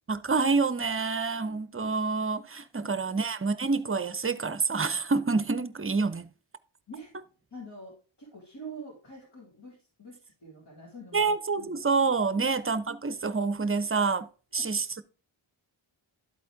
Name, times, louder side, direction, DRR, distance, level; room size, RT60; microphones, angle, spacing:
voice 1, 0.1-6.3 11.1-14.3 14.5-15.0, right 4 dB, 25° right, 0.6 m, -27 dB
voice 2, 1.3-1.6 6.9-7.1 7.5-11.7 12.4-12.6 14.5-14.7, right 2 dB, 55° left, 3.9 m, -46 dB
12.5 x 4.2 x 3.5 m
cardioid pair, 65°, 48 cm